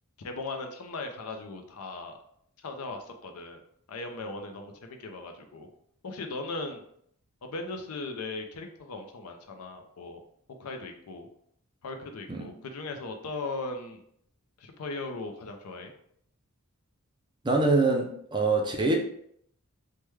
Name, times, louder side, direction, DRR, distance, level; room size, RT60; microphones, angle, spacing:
voice 1, 0.2-2.2 2.6-3.6 3.9-5.7 6.0-6.8 7.4-10.2 10.6-11.3 11.8-14.0 14.6-15.9, left 3 dB, 75° left, 5 dB, 0.5 m, -38 dB
voice 2, 17.4-19.0, right 3 dB, 20° right, 1 dB, 0.4 m, -24 dB
3.3 x 2.2 x 3.1 m, 0.68 s
head